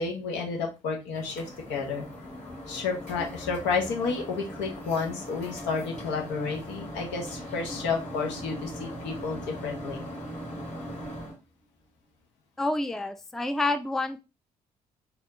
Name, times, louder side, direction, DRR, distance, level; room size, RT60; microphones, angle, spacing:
voice 1, 0.0-2.0 2.7-10.0, left 4 dB, 70° left, 1 dB, 1.3 m, -31 dB
sound 1, 1.1-11.4, equal, 40° left, 2.6 m, -39 dB
voice 2, 12.6-14.2, left 2 dB, ahead, 10 dB, 0.5 m, -28 dB
4.2 x 2.8 x 4.0 m, 0.28 s
figure-of-eight pair, 45°, 19 cm